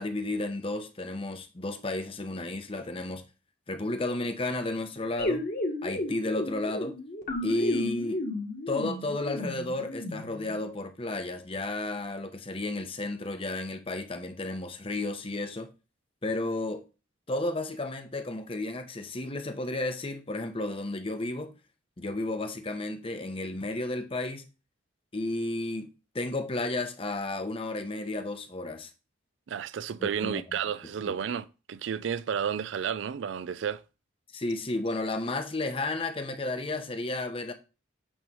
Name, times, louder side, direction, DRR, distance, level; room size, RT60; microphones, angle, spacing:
voice 1, 0.0-3.2 3.7-5.4 5.8-7.0 7.4-8.2 8.7-15.7 16.2-16.8 17.3-21.5 22.0-24.5 25.1-25.9 26.1-28.9 30.0-30.4 31.0-31.2 34.3-37.5, left 2 dB, 30° left, 0.8 m, -32 dB
sound 1, 5.2-10.7, left 1 dB, 45° left, 1.6 m, -33 dB
voice 2, 29.5-33.8, right 7 dB, 75° right, 0.4 m, -32 dB
8.7 x 3.1 x 5.3 m
head